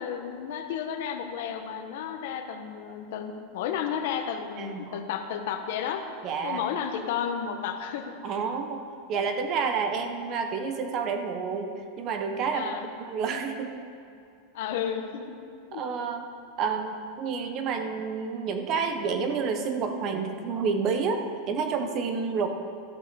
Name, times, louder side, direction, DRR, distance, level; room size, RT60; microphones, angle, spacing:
voice 1, 0.0-6.0 6.4-8.1 12.5-12.9 14.5-15.4 15.7-15.8, left 8 dB, 65° left, 6 dB, 0.9 m, -32 dB
voice 2, 4.6-5.0 6.2-6.6 8.2-8.8 9.1-11.7 12.0-12.7 13.0-13.7 15.7-16.2 16.6-22.5, right 5 dB, 35° right, 6 dB, 0.8 m, -29 dB
12.5 x 5.5 x 6.7 m, 2.5 s
supercardioid pair, 165°, 0 cm